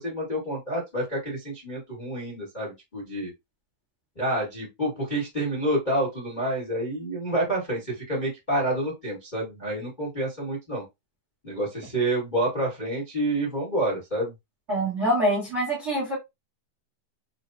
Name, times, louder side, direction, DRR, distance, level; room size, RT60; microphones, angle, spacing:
voice 1, 0.0-3.3 4.1-10.8 11.4-14.3, right 1 dB, 35° left, 0.7 m, -28 dB
voice 2, 14.7-16.1, right 1 dB, 55° right, 0.7 m, -25 dB
6.6 x 2.2 x 2.7 m
omnidirectional pair, 4.1 m